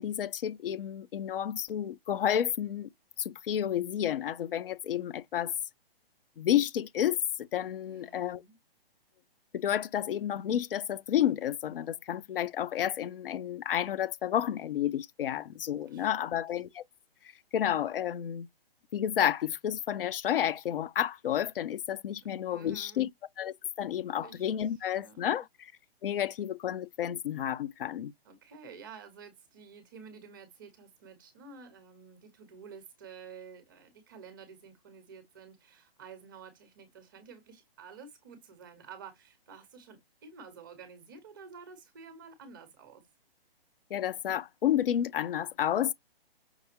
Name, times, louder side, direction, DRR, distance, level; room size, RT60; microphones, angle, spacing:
voice 1, 0.0-2.9 3.2-5.5 6.4-7.2 7.5-8.4 9.5-16.8 17.5-18.5 18.9-23.1 23.4-25.7 26.0-28.1 43.9-45.9, left 10 dB, 65° left, 0.5 m, -31 dB
voice 2, 7.8-8.6 15.8-16.5 22.5-23.1 24.1-25.3 28.2-43.0, right 5 dB, 20° right, 0.8 m, -51 dB
5.9 x 2.2 x 2.8 m
hypercardioid pair, 170°, 30 cm